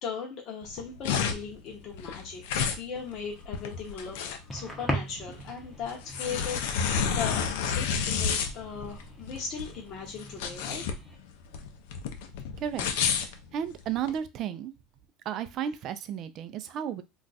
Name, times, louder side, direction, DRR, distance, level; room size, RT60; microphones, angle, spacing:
voice 1, 0.0-4.2 4.5-10.8, left 6 dB, 45° left, -1 dB, 0.8 m, -38 dB
sound 1, 0.6-14.1, left 6 dB, 80° left, 0.5 m, -31 dB
sound 2, 3.0-11.2, equal, 5° left, 0.8 m, -41 dB
voice 2, 13.2-14.7 15.3-17.0, right 9 dB, 45° right, 11 dB, 0.4 m, -33 dB
2.4 x 2.3 x 3.9 m, 0.25 s
supercardioid pair, 140°, 0 cm